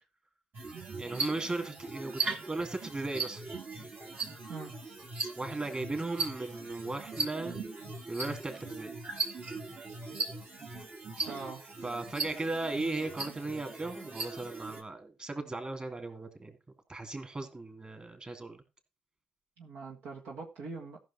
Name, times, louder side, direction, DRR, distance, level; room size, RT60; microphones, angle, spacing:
sound 1, 0.5-14.8, right 4 dB, 50° right, 2.7 m, -39 dB
voice 1, 1.0-3.4 5.4-7.6 8.1-8.9 11.8-16.6 16.9-18.6, right 2 dB, 30° right, 6 dB, 3.0 m, -37 dB
voice 2, 11.2-11.6 19.6-21.0, right 4 dB, 75° right, 0 dB, 1.5 m, -42 dB
14.0 x 6.1 x 4.3 m, 0.28 s
hypercardioid pair, 50°, 4 cm